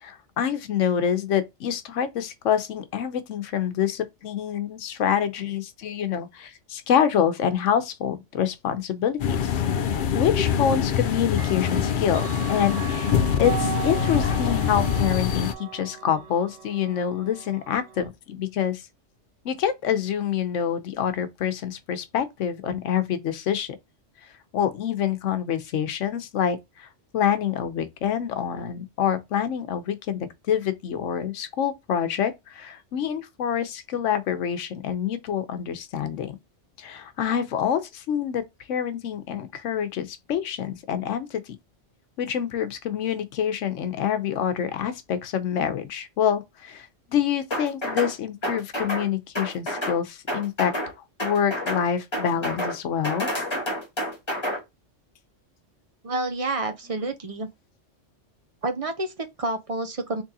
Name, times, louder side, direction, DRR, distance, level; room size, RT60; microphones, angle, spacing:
voice 1, 0.0-9.6 10.1-18.8 19.4-23.8 24.5-26.9 27.1-36.3 36.8-41.6 42.2-50.7 51.2-53.3, left 8 dB, 85° left, 1.0 m, -26 dB
sound 1, 9.2-15.5, left 8 dB, 60° left, 0.5 m, -24 dB
Clock, 9.9-10.0 11.3-18.1, right 9 dB, 90° right, 1.1 m, -37 dB
sound 2, 47.5-48.1 48.4-49.1 49.4-50.0 50.3-50.9 51.2-51.8 52.1-52.8 53.0-54.6, equal, 25° left, 1.2 m, -29 dB
voice 2, 56.0-57.5 58.6-60.2, right 2 dB, 45° right, 0.5 m, -29 dB
3.6 x 3.2 x 2.7 m
omnidirectional pair, 1.2 m